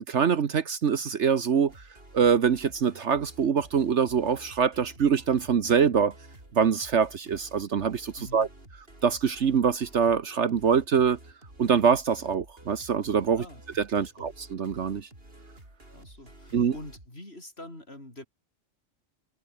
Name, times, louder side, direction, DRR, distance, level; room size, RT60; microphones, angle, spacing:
voice 1, 0.1-1.8 2.1-6.1 6.5-8.5 9.0-11.2 11.6-13.4 13.8-15.1 16.5-16.7, right 7 dB, 60° right, 1.3 m, -24 dB
sound 1, 1.7-17.1, right 1 dB, 45° right, 6.9 m, -51 dB
voice 2, 8.2-8.5 13.3-13.6 14.0-14.3 15.9-18.3, left 1 dB, 50° left, 8.2 m, -45 dB
omnidirectional pair, 1.3 m